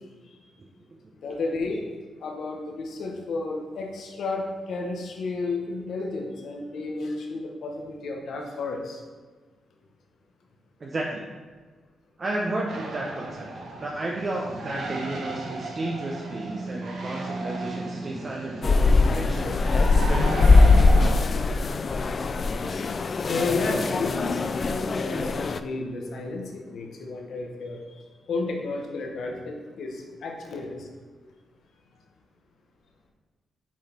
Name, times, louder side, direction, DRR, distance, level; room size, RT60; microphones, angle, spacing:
voice 1, 1.2-1.9 2.2-9.0 23.3-30.9, left 3 dB, 75° left, 1 dB, 0.9 m, -32 dB
voice 2, 10.8-11.2 12.2-13.5 13.8-19.5, right 2 dB, 40° right, -2 dB, 0.7 m, -32 dB
sound 1, 12.7-21.1, right 2 dB, 75° right, 1.0 m, -34 dB
sound 2, 18.6-25.6, left 3 dB, 45° left, 0.3 m, -21 dB
6.1 x 4.1 x 4.2 m, 1.4 s
cardioid pair, 75°, 0 cm